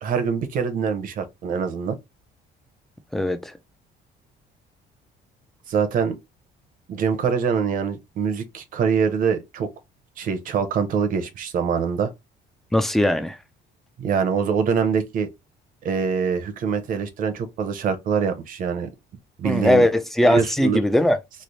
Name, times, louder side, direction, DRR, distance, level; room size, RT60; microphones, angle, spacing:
voice 1, 0.0-2.0 5.7-6.2 6.9-9.7 10.2-12.1 14.0-15.3 15.8-18.9 19.4-19.9 20.2-20.8, right 6 dB, 50° right, 0.7 m, -24 dB
voice 2, 3.1-3.5 12.7-13.4 19.4-21.2, left 1 dB, ahead, 0.4 m, -19 dB
3.2 x 2.0 x 3.9 m
cardioid pair, 160°, 17 cm